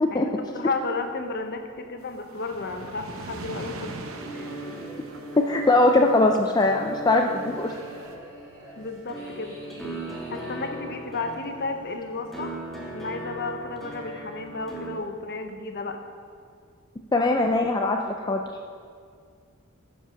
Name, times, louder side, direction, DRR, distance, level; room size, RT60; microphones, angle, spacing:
voice 1, 0.2-3.9 4.3-4.6 8.8-9.6 10.3-12.5 12.9-16.0, left 3 dB, 50° left, 6 dB, 0.9 m, -33 dB
sound 1, 2.0-6.7 7.0-8.1, right 2 dB, 70° right, 0.8 m, -41 dB
sound 2, 3.8-12.3, equal, 20° right, 2.4 m, -46 dB
sound 3, 4.2-14.9, right 1 dB, ahead, 1.5 m, -40 dB
voice 2, 5.4-7.7 17.1-18.4, left 2 dB, 20° left, 2 dB, 0.4 m, -21 dB
10.5 x 5.4 x 6.3 m, 2.2 s
head